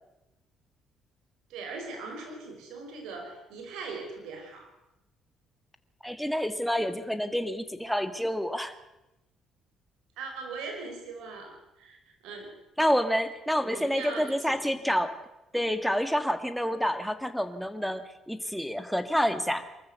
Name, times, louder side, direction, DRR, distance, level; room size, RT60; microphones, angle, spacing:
voice 1, 1.5-4.7 10.2-12.5 13.6-15.0, right 4 dB, 75° right, 4 dB, 5.5 m, -40 dB
voice 2, 6.0-8.7 12.8-15.1 15.5-19.6, equal, ahead, 9 dB, 1.8 m, -28 dB
23.0 x 14.0 x 8.2 m, 0.94 s
supercardioid pair, 60°, 0 cm